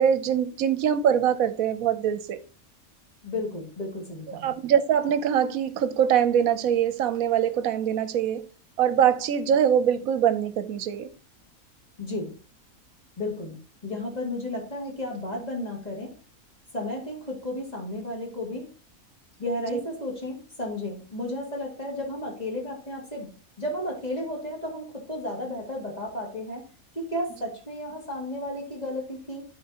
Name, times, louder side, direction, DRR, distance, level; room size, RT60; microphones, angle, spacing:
voice 1, 0.0-2.4 4.3-8.4 8.8-11.1 19.7-19.8, right 9 dB, 75° right, 1.1 m, -23 dB
voice 2, 3.2-4.5 12.0-12.3 13.2-13.5 13.8-16.1 16.7-18.7 19.4-23.3 23.6-26.6 26.9-29.4, left 1 dB, 30° left, 2.4 m, -33 dB
12.0 x 4.6 x 2.9 m
omnidirectional pair, 1.5 m